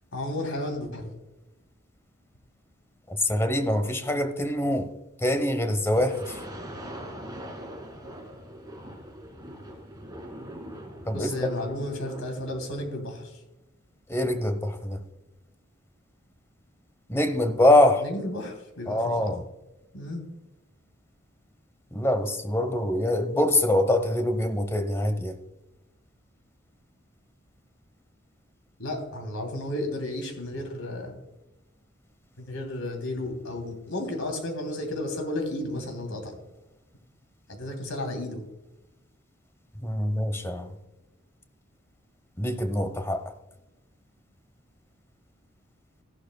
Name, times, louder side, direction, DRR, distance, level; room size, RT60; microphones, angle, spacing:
voice 1, 0.1-1.1 11.1-13.4 18.0-19.3 19.9-20.2 28.8-31.2 32.4-36.4 37.5-38.4, left 1 dB, 85° left, 3 dB, 2.9 m, -33 dB
voice 2, 3.1-4.9 5.2-6.4 11.0-11.3 14.1-15.0 17.1-18.0 18.9-19.4 21.9-25.4 39.8-40.7 42.4-43.2, left 1 dB, 15° left, 8 dB, 0.9 m, -24 dB
sound 1, 5.9-12.9, equal, 20° right, 2.1 m, -42 dB
14.5 x 11.5 x 2.3 m, 0.99 s
head